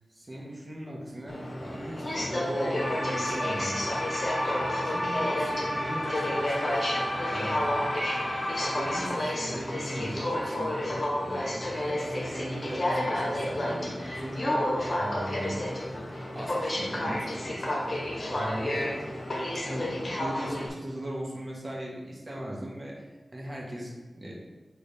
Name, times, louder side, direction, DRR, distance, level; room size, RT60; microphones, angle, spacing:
voice 1, 0.1-6.8 7.3-7.9 8.7-10.8 11.2-14.7 15.0-16.0 16.3-19.0 19.5-23.0 23.3-24.3, right 1 dB, 25° right, -3 dB, 1.5 m, -38 dB
Aircraft, 1.3-20.7, left 1 dB, 45° left, 1.2 m, -31 dB
sound 1, 2.8-9.1, equal, 25° left, 1.5 m, -32 dB
6.3 x 4.3 x 3.6 m, 1.2 s
wide cardioid pair, 100°, 0 cm